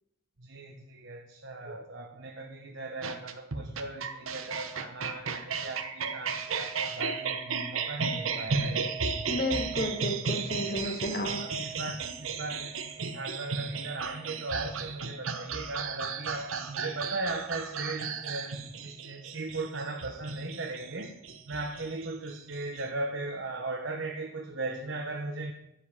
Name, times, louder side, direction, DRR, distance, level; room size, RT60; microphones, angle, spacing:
voice 1, 0.4-8.9 10.8-11.0 11.4-21.1 21.5-25.5, right 2 dB, 65° right, 2 dB, 1.2 m, -38 dB
sound 1, 3.0-22.8, right 5 dB, 85° right, 1.1 m, -34 dB
voice 2, 9.3-11.4, left 1 dB, 45° left, 4 dB, 1.6 m, -32 dB
12.5 x 5.6 x 8.6 m, 0.78 s
head